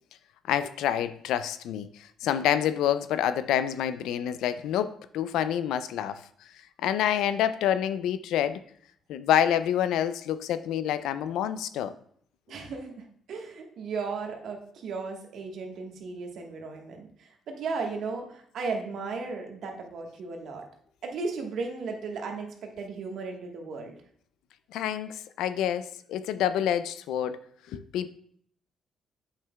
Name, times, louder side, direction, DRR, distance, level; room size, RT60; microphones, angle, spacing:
voice 1, 0.5-6.2 6.8-8.6 9.1-11.9 24.7-27.4 27.7-28.1, left 10 dB, 90° left, 13 dB, 0.4 m, -27 dB
voice 2, 12.5-20.6 21.0-24.0, right 4 dB, 70° right, 2 dB, 1.3 m, -35 dB
8.0 x 5.5 x 2.3 m, 0.62 s
cardioid pair, 90°, 0 cm